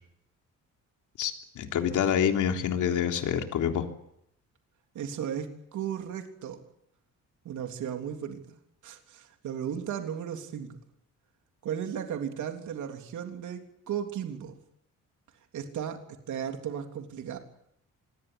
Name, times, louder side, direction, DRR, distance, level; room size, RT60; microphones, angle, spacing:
voice 1, 1.2-3.9, left 8 dB, 75° left, 4 dB, 3.7 m, -27 dB
voice 2, 4.9-6.6 7.4-8.6 8.8-10.8 11.6-14.6 15.5-17.4, right 8 dB, 70° right, 5 dB, 3.4 m, -35 dB
26.5 x 21.0 x 8.4 m, 0.76 s
cardioid pair, 145°, 31 cm